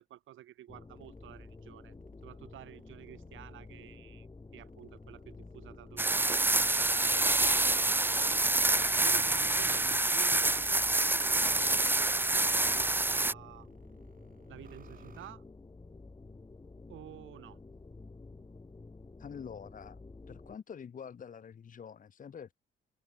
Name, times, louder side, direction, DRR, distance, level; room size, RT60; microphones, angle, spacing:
voice 1, 0.0-1.9 2.2-4.3 4.5-8.0 9.0-13.7 14.5-15.4 16.9-17.6, right 13 dB, 80° right, 6.6 m, -51 dB
sound 1, 0.7-20.6, left 3 dB, 20° left, 3.5 m, -51 dB
sound 2, 0.9-4.0 4.6-11.6 12.2-15.3, right 6 dB, 45° right, 7.8 m, -63 dB
sound 3, 6.0-13.3, right 2 dB, 10° right, 0.7 m, -27 dB
voice 2, 19.2-20.0 20.3-22.5, left 7 dB, 40° left, 1.2 m, -46 dB
cardioid pair, 90°, 20 cm